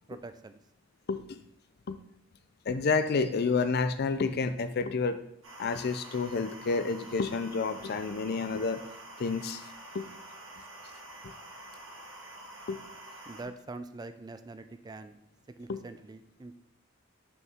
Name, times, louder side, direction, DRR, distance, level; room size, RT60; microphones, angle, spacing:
voice 1, 0.1-0.6 13.3-15.2 15.5-16.6, right 3 dB, 20° right, 10 dB, 0.3 m, -44 dB
voice 2, 2.7-5.2 5.6-8.8 9.2-9.6 9.9-10.1 12.7-12.8 15.7-15.8, left 4 dB, 55° left, 11 dB, 0.5 m, -29 dB
sound 1, 5.4-13.4, right 1 dB, 70° right, 2.1 m, -47 dB
6.4 x 5.5 x 3.5 m, 0.71 s
head